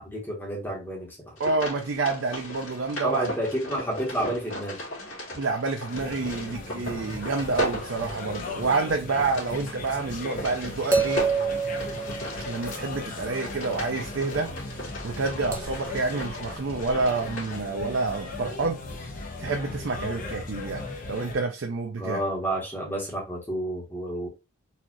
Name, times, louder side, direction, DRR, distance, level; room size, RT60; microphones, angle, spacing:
voice 1, 0.0-1.3 3.0-4.8 22.0-24.3, right 1 dB, 10° left, 1.1 m, -30 dB
sound 1, 1.4-17.6, left 1 dB, 70° left, 2.0 m, -37 dB
voice 2, 1.4-3.2 5.3-11.3 12.5-14.5 15.0-18.8 19.4-20.8 21.1-22.2, right 3 dB, 60° right, 0.5 m, -28 dB
sound 2, 5.9-21.4, left 3 dB, 40° left, 0.7 m, -37 dB
sound 3, 9.5-9.6 10.9-13.0 15.5-16.0 17.1-17.2, right 5 dB, 15° right, 0.6 m, -28 dB
4.2 x 2.4 x 2.9 m
head